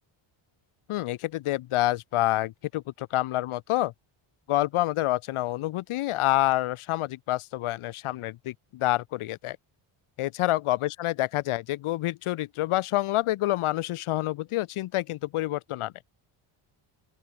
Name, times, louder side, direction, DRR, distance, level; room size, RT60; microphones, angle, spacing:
voice 1, 0.9-3.9 4.5-9.6 10.2-15.9, left 16 dB, 75° left, 2.1 m, -27 dB
open air
cardioid pair, 175°, 50 cm